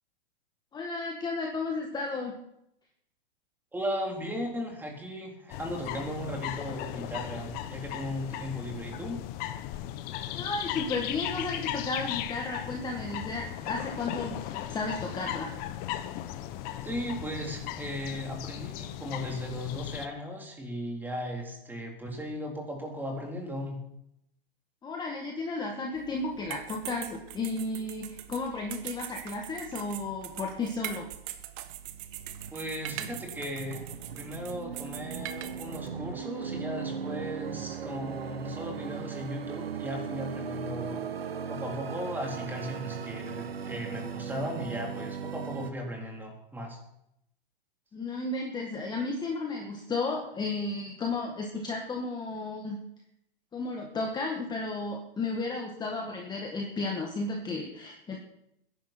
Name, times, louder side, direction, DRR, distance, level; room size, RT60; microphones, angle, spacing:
voice 1, 0.7-2.3 10.3-15.5 24.8-31.1 47.9-52.8 53.5-58.2, left 3 dB, 15° left, 1 dB, 1.9 m, -33 dB
voice 2, 3.7-9.2 16.8-23.8 32.5-33.8 34.1-41.2 41.5-46.8, equal, 5° right, 1 dB, 3.8 m, -37 dB
sound 1, 5.5-20.1, left 12 dB, 30° left, 1.0 m, -37 dB
sound 2, 25.9-35.9, right 13 dB, 35° right, 1.3 m, -42 dB
sound 3, 31.7-45.7, right 7 dB, 85° right, 1.2 m, -38 dB
21.0 x 11.0 x 4.5 m, 0.78 s
hypercardioid pair, 125°, 29 cm